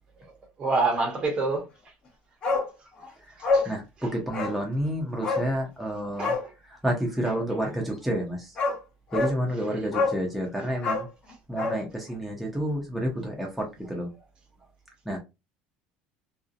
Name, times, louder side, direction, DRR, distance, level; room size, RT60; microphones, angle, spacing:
voice 1, 0.6-1.7 3.5-3.7 6.2-6.4 9.7-9.9, right 3 dB, 30° right, 0.8 m, -26 dB
Bark, 2.4-2.7 3.0-3.1 3.4-3.7 4.3-4.6 5.2-5.5 6.1-6.5 8.1-8.2 8.6-8.8 9.1-9.4 9.9-10.2 10.8-11.8 12.1-12.2, left 3 dB, 35° left, 0.9 m, -26 dB
voice 2, 3.7-6.3 6.7-8.5 9.1-11.1 11.5-14.1 15.1-15.2, equal, ahead, 0.6 m, -29 dB
2.6 x 2.0 x 2.4 m
cardioid pair, 145°, 3 cm